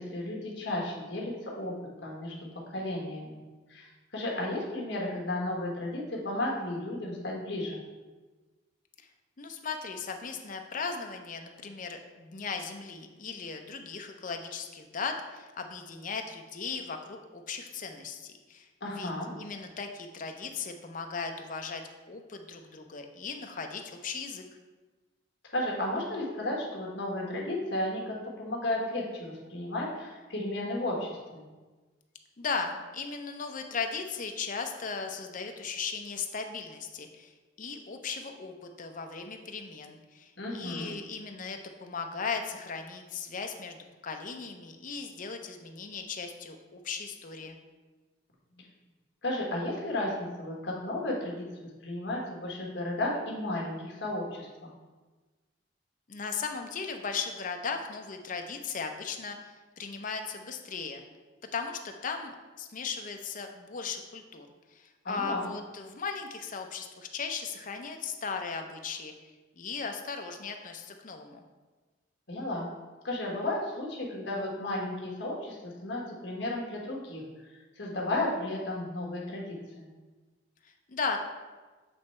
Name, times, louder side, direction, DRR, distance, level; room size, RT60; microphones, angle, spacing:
voice 1, 0.0-1.7 2.0-2.3 2.7-3.4 3.7-7.8 18.8-19.3 25.5-31.5 40.4-40.9 48.6-48.7 49.2-54.7 65.0-65.5 72.3-72.7 73.0-77.2 77.8-79.9, left 1 dB, 70° left, -2 dB, 1.4 m, -33 dB
voice 2, 9.4-18.7 19.0-19.1 19.4-21.8 22.1-24.4 32.4-37.3 37.6-47.6 56.1-61.0 61.5-69.1 69.6-71.4 80.6-81.2, left 5 dB, 45° left, 5 dB, 0.6 m, -37 dB
7.8 x 3.2 x 4.4 m, 1.3 s
head